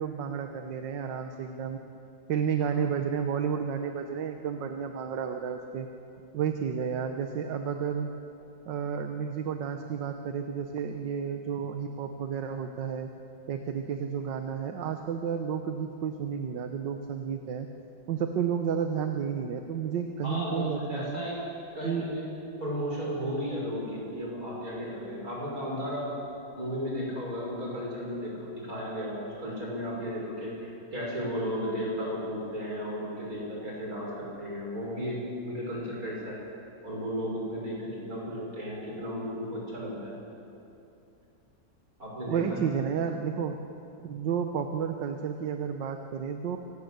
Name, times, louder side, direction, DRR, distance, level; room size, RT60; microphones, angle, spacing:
voice 1, 0.0-1.8 2.3-5.9 6.3-8.1 8.7-13.1 13.5-17.7 18.1-21.2 21.8-22.0 42.3-43.6 44.0-46.6, right 7 dB, 70° right, 6 dB, 1.7 m, -31 dB
voice 2, 20.2-21.4 21.7-22.3 22.6-26.1 26.5-36.4 36.8-40.1 42.0-42.6, equal, 45° right, -3 dB, 7.3 m, -34 dB
26.0 x 18.0 x 8.1 m, 2.7 s
omnidirectional pair, 2.1 m